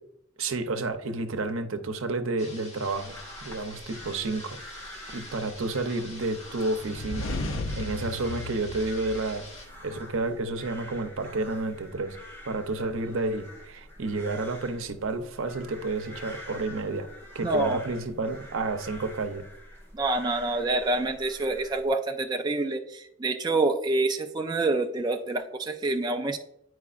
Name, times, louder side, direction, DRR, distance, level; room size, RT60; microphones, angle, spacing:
voice 1, 0.4-3.2 3.4-4.6 5.1-7.3 7.8-9.4 9.8-12.2 12.5-17.1 17.3-19.4, right 3 dB, 80° right, 8 dB, 0.7 m, -30 dB
sound 1, 2.4-9.7, left 2 dB, 35° left, 1.4 m, -47 dB
sound 2, 2.9-21.9, equal, 10° left, 1.8 m, -46 dB
sound 3, 6.8-9.8, left 2 dB, 85° left, 0.6 m, -35 dB
voice 2, 17.4-17.8 19.9-26.4, right 2 dB, 20° right, 4 dB, 0.3 m, -27 dB
9.5 x 4.7 x 2.5 m, 0.77 s
head